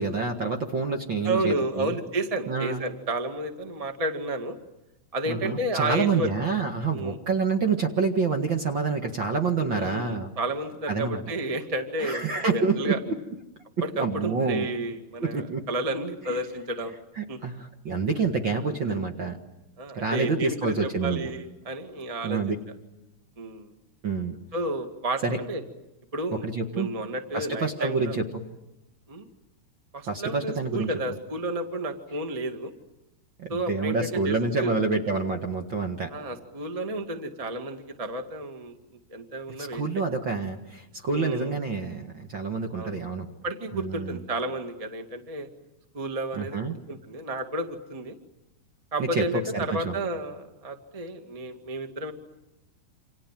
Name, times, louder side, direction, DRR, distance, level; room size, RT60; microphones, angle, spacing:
voice 1, 0.0-2.0 2.5-2.8 5.3-10.3 10.9-11.2 12.0-13.2 13.9-14.7 15.2-15.7 16.3-16.4 17.2-19.4 19.9-21.3 22.2-22.6 24.0-24.4 25.2-25.4 26.3-26.9 27.3-28.4 30.1-30.9 33.4-36.1 39.6-43.3 43.7-44.2 46.3-46.8 49.0-49.9, right 4 dB, 45° right, 4 dB, 1.6 m, -27 dB
voice 2, 1.2-4.5 5.1-6.3 6.9-7.2 9.7-12.3 12.5-13.0 13.8-16.9 17.3-17.4 18.7-18.8 19.8-22.4 23.4-23.7 24.5-25.2 25.5-25.6 26.1-26.4 26.7-28.2 29.1-29.3 29.9-32.7 33.5-34.7 36.1-38.7 39.1-40.0 41.1-41.5 42.7-43.0 43.4-45.5 45.9-46.6 46.9-48.1 48.9-52.1, right 1 dB, 25° right, 5 dB, 0.7 m, -31 dB
28.5 x 27.5 x 7.6 m, 0.95 s
omnidirectional pair, 4.6 m